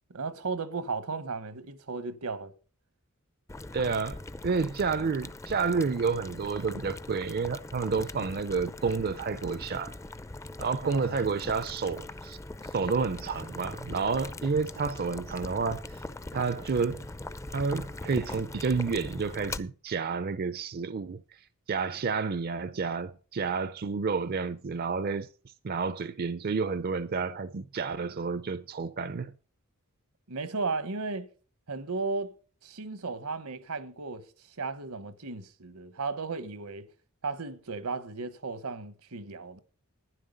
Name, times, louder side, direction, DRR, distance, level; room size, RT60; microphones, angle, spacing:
voice 1, 0.1-2.5 3.9-4.0 10.8-11.2 30.3-31.3 31.7-32.3 32.6-34.2 34.6-36.9 37.2-39.6, right 4 dB, 80° right, 1.1 m, -35 dB
Boiling, 3.5-19.6, left 2 dB, 15° left, 0.5 m, -41 dB
voice 2, 3.7-10.0 10.6-12.4 12.7-16.0 16.3-17.0 17.5-21.2 21.7-25.3 25.6-29.3, right 5 dB, 45° right, 0.5 m, -30 dB
11.5 x 10.5 x 5.3 m
head